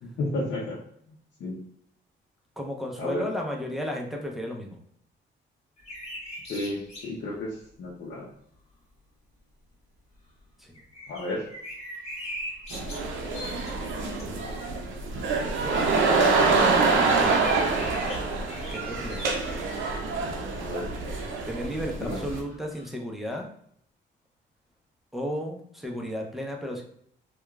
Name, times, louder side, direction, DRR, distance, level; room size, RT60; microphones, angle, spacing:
voice 1, 0.0-0.8 1.4-1.6 3.0-3.3 6.5-8.3 11.1-11.5 20.6-20.9 22.0-22.2, left 2 dB, 65° left, -4 dB, 0.6 m, -32 dB
voice 2, 2.6-4.8 10.6-10.8 17.1-17.9 18.7-19.3 21.5-23.5 25.1-26.8, equal, ahead, 0 dB, 0.5 m, -34 dB
sound 1, 5.8-7.2 7.7-7.8 10.7-14.6 15.1-19.5 20.1-20.2 21.6-22.9, equal, 30° left, 1.2 m, -41 dB
sound 2, 12.7-22.4, right 4 dB, 75° right, 0.6 m, -26 dB
2.8 x 2.2 x 2.3 m, 0.69 s
cardioid pair, 90°, 20 cm